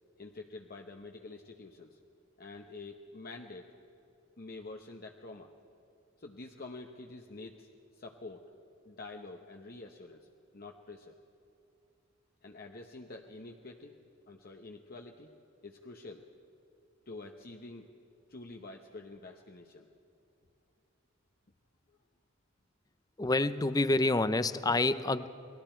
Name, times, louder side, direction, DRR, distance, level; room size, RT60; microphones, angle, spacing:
voice 1, 0.2-2.0 2.4-3.7 4.4-5.5 6.2-7.7 8.0-8.4 8.8-10.2 10.5-11.1 12.4-14.0 14.3-15.3 15.6-16.2 17.1-17.9 18.3-19.9, left 3 dB, 50° left, 2 dB, 1.0 m, -47 dB
voice 2, 23.2-25.3, left 2 dB, 20° left, 13 dB, 0.5 m, -27 dB
29.5 x 21.0 x 4.5 m, 2.7 s
head